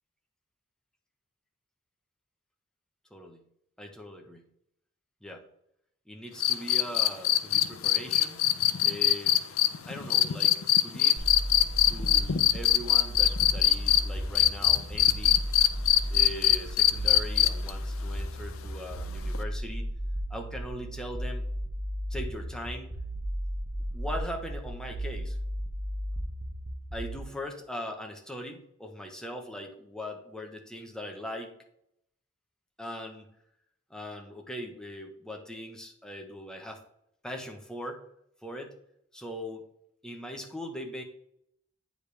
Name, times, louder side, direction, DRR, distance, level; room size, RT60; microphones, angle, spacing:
voice 1, 3.1-3.4 3.8-4.5 5.2-5.4 6.1-8.5 8.8-9.4 9.9-11.3 11.8-15.4 16.1-19.9 20.3-21.5 22.1-23.0 23.9-25.4 26.9-31.5 32.8-33.3 33.9-36.8 37.2-38.1 38.4-38.8 39.1-39.7 40.0-41.0, equal, 5° left, 2 dB, 1.0 m, -40 dB
sound 1, 6.4-14.0 14.4-17.7 19.3-19.4, left 13 dB, 90° left, 0.5 m, -22 dB
sound 2, 11.2-27.2, equal, 35° right, 0.8 m, -34 dB
8.7 x 5.0 x 3.3 m, 0.74 s
head